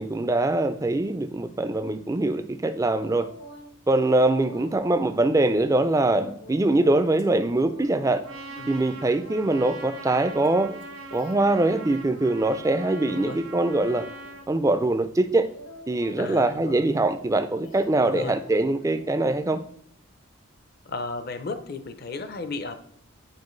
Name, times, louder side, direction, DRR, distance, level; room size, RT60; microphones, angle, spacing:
voice 1, 0.0-3.3 3.9-8.2 8.7-10.7 11.1-14.0 14.5-15.5 15.9-19.6, right 2 dB, 15° right, 0.3 m, -23 dB
sound 1, 3.0-3.7 4.1-12.0 12.4-13.7 14.0-14.5 14.8-18.1 18.4-19.1 19.5-19.7, equal, 75° left, 1.0 m, -46 dB
Trumpet, 8.2-14.5, right 2 dB, 80° right, 1.4 m, -41 dB
voice 2, 13.1-13.4 16.2-16.9 18.0-18.3 20.9-22.7, left 3 dB, 45° left, 0.5 m, -34 dB
9.5 x 4.6 x 3.2 m
head